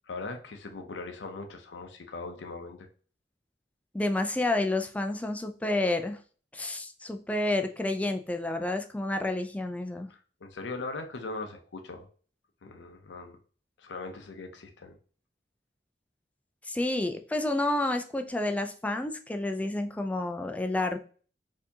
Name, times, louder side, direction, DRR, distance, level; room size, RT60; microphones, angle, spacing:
voice 1, 0.1-2.9 10.1-12.1 12.6-13.4 13.8-15.0, left 3 dB, 85° left, 5 dB, 0.6 m, -40 dB
voice 2, 3.9-6.2 6.5-10.1 16.6-21.0, left 2 dB, 10° left, 5 dB, 0.3 m, -30 dB
4.3 x 2.8 x 2.7 m, 0.41 s
head